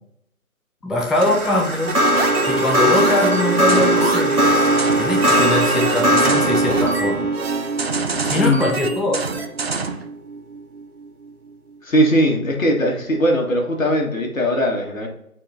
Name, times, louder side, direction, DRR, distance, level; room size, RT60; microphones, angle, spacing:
voice 1, 0.8-2.0 2.4-4.6 5.0-7.3 8.2-9.2, left 2 dB, ahead, 0 dB, 0.3 m, -22 dB
sound 1, 1.0-10.4, right 1 dB, 85° right, 1.8 m, -20 dB
sound 2, 1.9-10.0, right 4 dB, 45° right, 0.6 m, -27 dB
voice 2, 8.3-8.7 11.8-15.1, equal, 65° left, 1 dB, 2.0 m, -19 dB
8.5 x 4.5 x 2.8 m, 0.77 s
figure-of-eight pair, 155°, 43 cm